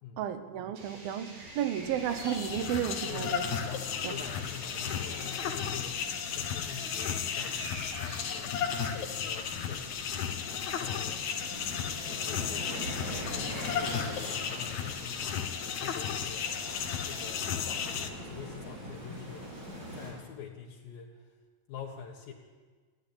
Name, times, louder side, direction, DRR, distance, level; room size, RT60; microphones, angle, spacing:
voice 1, 0.2-3.5 4.0-4.1, right 10 dB, 85° right, 10 dB, 2.9 m, -33 dB
sound 1, 0.8-17.2, right 1 dB, 70° right, 8.6 m, -47 dB
sound 2, 1.4-20.1, equal, 25° right, 7.9 m, -45 dB
sound 3, 2.0-18.1, left 8 dB, 65° left, 2.3 m, -34 dB
voice 2, 3.6-10.0 10.5-11.2 12.0-16.7 17.0-19.5 19.9-21.4 21.7-22.3, left 8 dB, 80° left, -1 dB, 3.2 m, -45 dB
20.5 x 15.5 x 8.8 m, 1.5 s
omnidirectional pair, 4.1 m